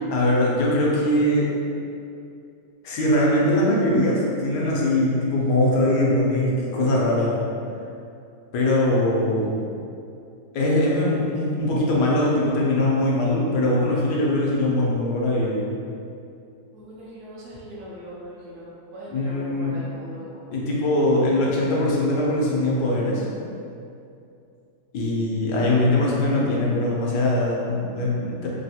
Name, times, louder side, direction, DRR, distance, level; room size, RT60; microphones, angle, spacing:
voice 1, 0.1-1.5 2.8-7.4 8.5-9.5 10.5-15.6 19.1-19.8 20.5-23.3 24.9-28.5, left 1 dB, 75° left, -4 dB, 1.2 m, -21 dB
voice 2, 16.7-20.7, equal, 70° right, -6 dB, 1.0 m, -40 dB
3.3 x 2.3 x 2.7 m, 2.5 s
omnidirectional pair, 1.8 m